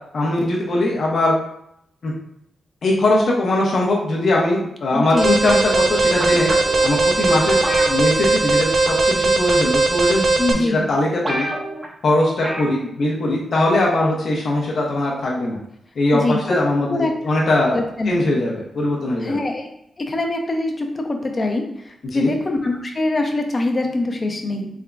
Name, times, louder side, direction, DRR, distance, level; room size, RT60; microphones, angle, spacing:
voice 1, 0.1-1.3 2.0-2.1 2.8-6.5 6.8-11.5 12.0-15.6 16.0-17.8 18.0-19.4 22.0-22.3, left 2 dB, 70° left, -4 dB, 0.9 m, -20 dB
voice 2, 4.9-5.4 10.4-10.8 16.1-16.6 16.9-17.1 17.7-18.2 19.2-19.7 20.0-24.7, left 2 dB, 40° left, 3 dB, 0.7 m, -23 dB
Alarm, 5.2-10.5, right 3 dB, 55° right, 0.6 m, -18 dB
sound 1, 6.2-6.9 7.6-8.6 8.9-9.2 10.0-10.1 10.7-10.8 10.9-11.0 11.2-11.9 12.4-12.8 13.1-13.2, right 1 dB, 25° right, 0.9 m, -28 dB
3.6 x 3.5 x 2.3 m, 0.75 s
cardioid pair, 55°, 0 cm